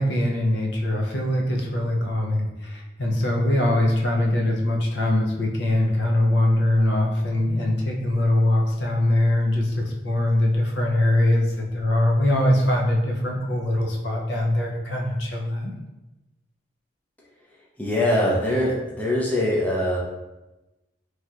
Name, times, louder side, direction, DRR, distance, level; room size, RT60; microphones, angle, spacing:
voice 1, 0.0-15.7, left 1 dB, 65° left, -1 dB, 0.5 m, -22 dB
voice 2, 17.8-20.0, left 1 dB, 10° left, -5 dB, 0.4 m, -22 dB
3.2 x 2.7 x 2.3 m, 1.0 s
head